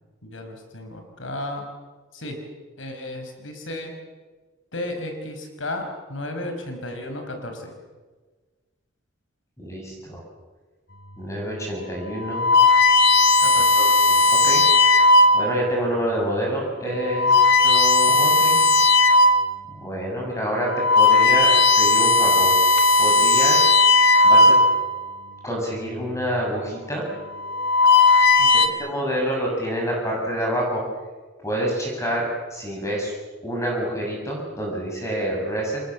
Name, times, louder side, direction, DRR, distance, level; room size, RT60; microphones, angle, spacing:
voice 1, 0.2-1.7 2.1-2.4 2.8-3.9 4.7-7.7 13.4-13.8 28.4-28.7, left 1 dB, 80° left, 5 dB, 5.2 m, -34 dB
voice 2, 9.6-10.2 11.2-12.5 13.8-14.6 15.3-18.7 19.7-23.7 24.2-24.6 25.4-27.1 28.5-30.8 31.4-33.1 33.4-35.8, equal, 15° left, -2 dB, 7.3 m, -27 dB
sound 1, 11.3-11.6 12.2-15.6 16.3-16.5 17.0-19.5 20.0-20.1 20.6-25.0 26.1-26.4 27.3-28.7, left 2 dB, 60° left, 2.8 m, -16 dB
29.5 x 25.5 x 7.4 m, 1.3 s
head